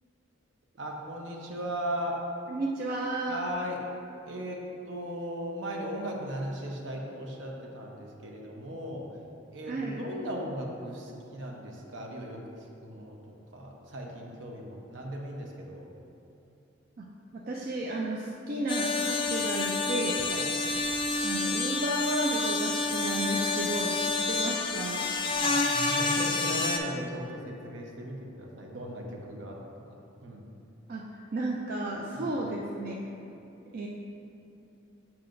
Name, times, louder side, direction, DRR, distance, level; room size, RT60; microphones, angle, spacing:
voice 1, 0.8-2.3 3.3-3.8 4.2-9.0 9.5-12.4 12.8-13.1 13.5-15.9 20.3-20.4 25.4-29.6 30.2-30.5 32.1-32.4, equal, 70° right, 0 dB, 0.8 m, -37 dB
voice 2, 2.5-3.4 9.6-10.0 17.0-17.1 17.3-20.2 21.2-25.1 30.9-31.0 31.3-33.0 33.7-33.9, right 1 dB, 50° right, -2 dB, 0.4 m, -33 dB
sound 1, 18.7-26.8, left 3 dB, 25° left, 0.4 m, -29 dB
7.5 x 5.8 x 2.6 m, 2.9 s
head